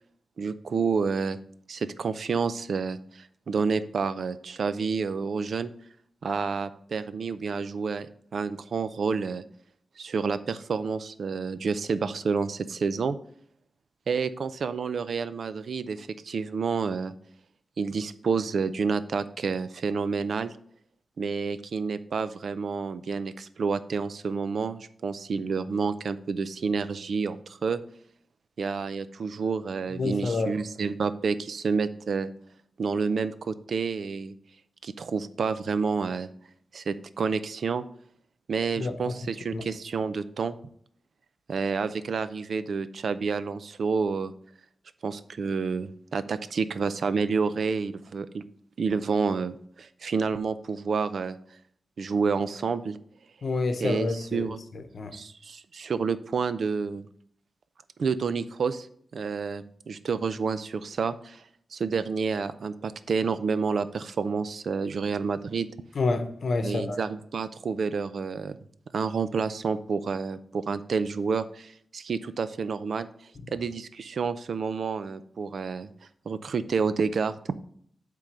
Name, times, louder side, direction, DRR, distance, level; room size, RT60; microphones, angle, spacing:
voice 1, 0.4-1.4 1.7-5.7 6.2-9.4 10.0-13.2 14.1-17.1 17.8-20.5 21.2-27.8 28.6-32.3 32.8-34.3 34.8-36.3 36.7-37.8 38.5-40.6 41.5-44.3 45.0-48.4 48.8-51.4 52.0-53.0 53.8-54.6 55.1-57.1 58.0-58.9 59.1-61.4 61.7-65.7 66.6-68.6 68.9-73.1 73.5-75.9 76.3-77.3, right 5 dB, 70° right, 0.5 m, -29 dB
voice 2, 30.0-30.5 38.8-38.9 39.5-39.7 53.4-54.5 54.9-55.1 65.9-67.0, left 3 dB, 60° left, 0.8 m, -28 dB
7.4 x 3.8 x 6.5 m
wide cardioid pair, 105°, 0 cm